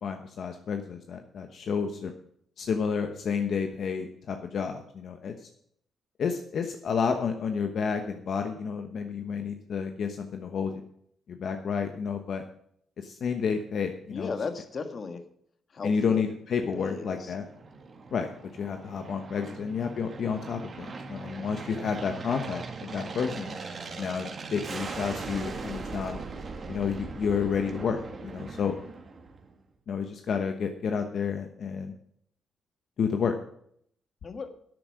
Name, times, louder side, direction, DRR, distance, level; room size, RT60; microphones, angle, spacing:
voice 1, 0.0-2.1 2.6-5.3 6.2-10.8 11.3-12.4 13.0-14.3 15.8-17.5 18.1-18.3 18.6-23.5 24.0-26.2 26.7-28.8 29.9-31.9 33.0-33.3, left 6 dB, 60° left, 5 dB, 1.1 m, -30 dB
voice 2, 14.1-15.2 15.7-16.3 16.7-17.4 19.4-19.5 34.2-34.6, left 4 dB, 45° left, 9 dB, 1.6 m, -36 dB
Aircraft, 17.0-29.6, right 4 dB, 40° right, 1.9 m, -40 dB
11.0 x 9.0 x 6.4 m, 0.67 s
cardioid pair, 100°, 0 cm